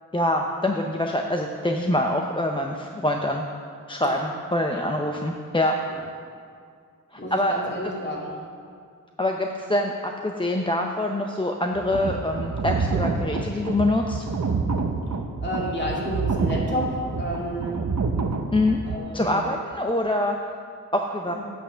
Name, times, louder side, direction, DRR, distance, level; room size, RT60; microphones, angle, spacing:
voice 1, 0.1-3.4 3.9-5.8 7.1-7.9 9.2-14.3 18.5-18.8 19.1-20.4 20.9-21.3, left 1 dB, 15° left, 2 dB, 0.5 m, -25 dB
voice 2, 7.2-8.3 15.4-17.8 18.9-19.4 21.3-21.4, equal, 35° left, -5 dB, 2.4 m, -30 dB
sound 1, 11.7-19.0, right 4 dB, 55° right, 0.8 m, -27 dB
8.0 x 6.7 x 6.2 m, 2.2 s
wide cardioid pair, 70°, 32 cm